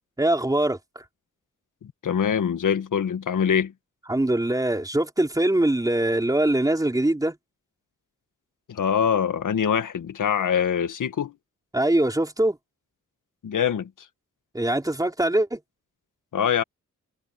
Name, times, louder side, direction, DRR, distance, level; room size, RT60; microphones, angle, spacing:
voice 1, 0.2-1.1 4.1-7.4 11.7-12.6 14.5-15.6, right 1 dB, 10° right, 3.8 m, -23 dB
voice 2, 1.8-3.7 8.7-11.3 13.4-13.9 16.3-16.6, left 8 dB, 90° left, 1.7 m, -24 dB
wide cardioid pair, 160°, 31 cm